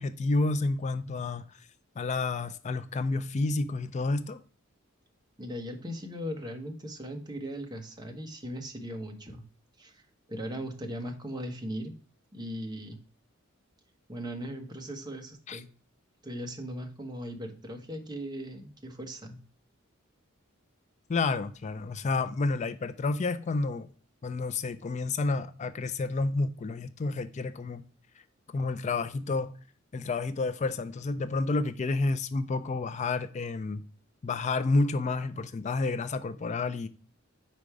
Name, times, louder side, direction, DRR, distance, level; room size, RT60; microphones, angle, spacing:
voice 1, 0.0-1.4 2.0-4.4 15.5-15.6 21.1-23.9 24.2-27.8 28.5-29.5 29.9-33.8 34.2-36.9, left 3 dB, 35° left, 0.4 m, -30 dB
voice 2, 5.4-9.5 9.8-10.0 10.3-11.9 12.3-13.0 14.1-15.7 16.2-19.4, equal, 20° right, 1.1 m, -38 dB
5.2 x 4.3 x 4.7 m
head